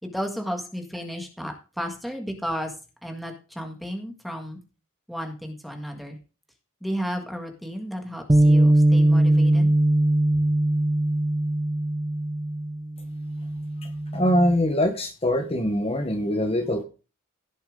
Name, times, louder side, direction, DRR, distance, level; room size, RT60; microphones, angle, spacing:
voice 1, 0.0-2.7 3.0-4.6 5.1-6.2 6.8-9.7, equal, ahead, 4 dB, 1.7 m, -33 dB
Bass guitar, 8.3-14.5, right 1 dB, 15° right, 0.5 m, -21 dB
voice 2, 13.8-16.8, equal, 30° left, 6 dB, 1.2 m, -23 dB
16.5 x 7.1 x 3.8 m, 0.33 s
head